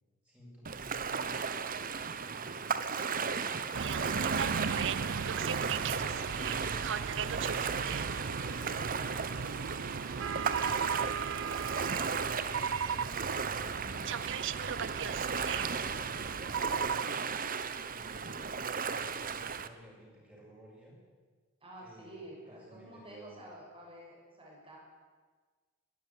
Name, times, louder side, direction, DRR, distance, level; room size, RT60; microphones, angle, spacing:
voice 1, 0.2-1.3 1.9-3.5 7.4-11.0 11.9-13.3 14.7-17.2 17.9-21.0 21.8-22.2 22.5-23.4, equal, 5° right, -4 dB, 7.8 m, -55 dB
Ocean, 0.6-19.7, right 5 dB, 40° right, 1.0 m, -35 dB
sound 1, 3.7-17.0, right 6 dB, 55° right, 0.6 m, -36 dB
voice 2, 13.8-14.1 21.6-24.8, right 1 dB, 25° right, -2 dB, 6.5 m, -50 dB
21.0 x 13.0 x 9.9 m, 1.5 s
head